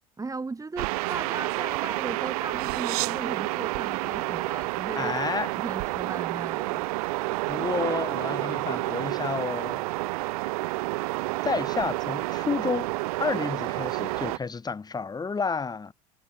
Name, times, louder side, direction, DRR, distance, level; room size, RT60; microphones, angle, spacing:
voice 1, 0.2-5.1 5.6-6.8, right 3 dB, 15° right, 2.8 m, -37 dB
sound 1, 0.8-14.4, right 23 dB, 65° right, 1.4 m, -29 dB
voice 2, 5.0-5.5 7.5-9.8 11.4-12.9 13.2-15.9, left 5 dB, 20° left, 2.2 m, -30 dB
hypercardioid pair, 75°, 20 cm